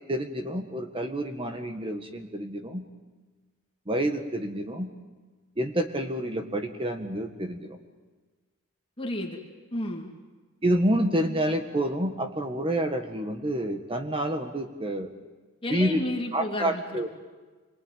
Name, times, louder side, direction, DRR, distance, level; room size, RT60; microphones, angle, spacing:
voice 1, 0.1-2.8 3.9-4.9 5.6-7.8 10.6-15.1 15.7-16.0 16.3-17.1, right 1 dB, 25° right, 6 dB, 1.6 m, -28 dB
voice 2, 9.0-9.4 9.7-10.1 15.6-17.0, left 1 dB, 25° left, -1 dB, 2.5 m, -32 dB
28.0 x 22.0 x 9.2 m, 1.3 s
head